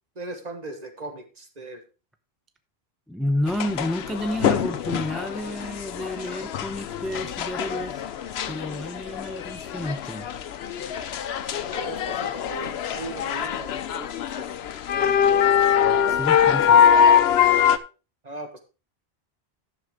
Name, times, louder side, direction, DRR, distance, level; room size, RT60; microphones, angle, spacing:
voice 1, 0.1-1.8 11.7-14.5 18.2-18.6, right 2 dB, 40° right, 5 dB, 1.5 m, -38 dB
voice 2, 3.1-8.0 8.5-10.3 16.1-16.8, left 1 dB, ahead, 8 dB, 0.6 m, -30 dB
sound 1, 3.5-17.8, left 8 dB, 80° left, 0.9 m, -23 dB
11.0 x 7.0 x 3.6 m, 0.32 s
omnidirectional pair, 1.1 m